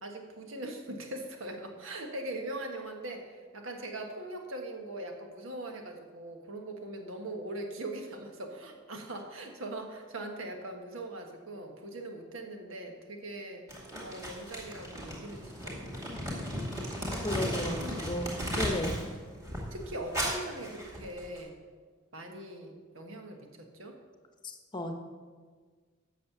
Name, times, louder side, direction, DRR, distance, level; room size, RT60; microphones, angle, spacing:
voice 1, 0.0-13.6 14.0-17.2 17.8-18.1 19.7-21.5 22.1-24.0, right 1 dB, 85° right, 3 dB, 1.4 m, -41 dB
Crumpling crinkling, 13.7-19.1 19.4-21.4, equal, 15° right, 2.4 m, -36 dB
voice 2, 17.2-18.3 18.6-19.0 24.4-25.0, left 1 dB, 20° left, 5 dB, 0.9 m, -34 dB
8.4 x 6.5 x 7.0 m, 1.5 s
head